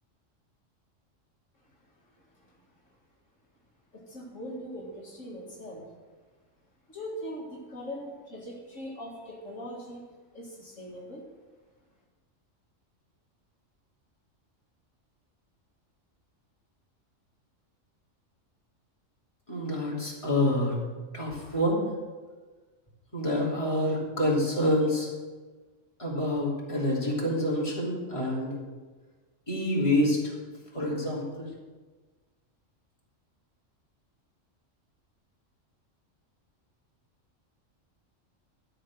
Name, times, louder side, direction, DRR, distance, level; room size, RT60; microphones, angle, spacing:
voice 1, 1.6-3.0 3.9-5.9 6.9-10.1 10.3-11.2, equal, 70° left, -3 dB, 2.4 m, -41 dB
voice 2, 19.5-20.7 21.1-21.8 23.1-25.1 26.0-28.6 29.5-30.3 30.7-31.5, left 1 dB, 25° left, -5 dB, 3.2 m, -27 dB
12.5 x 6.5 x 7.6 m, 1.3 s
omnidirectional pair, 1.3 m